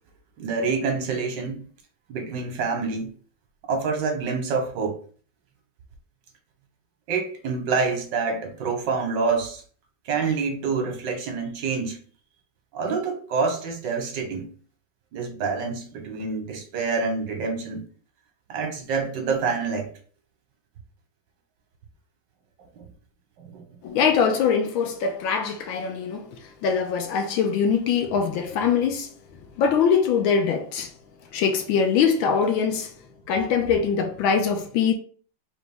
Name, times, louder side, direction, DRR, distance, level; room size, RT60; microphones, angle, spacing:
voice 1, 0.4-1.6 2.1-3.1 3.7-5.0 7.1-9.6 10.0-12.0 12.7-14.5 15.1-17.8 18.5-19.9 22.8-22.9 23.4-23.6, right 4 dB, 65° right, 1.5 m, -27 dB
voice 2, 23.8-29.1 29.6-30.9 31.3-32.9 33.3-34.9, left 6 dB, 75° left, 1.4 m, -23 dB
4.1 x 2.9 x 3.4 m
omnidirectional pair, 2.3 m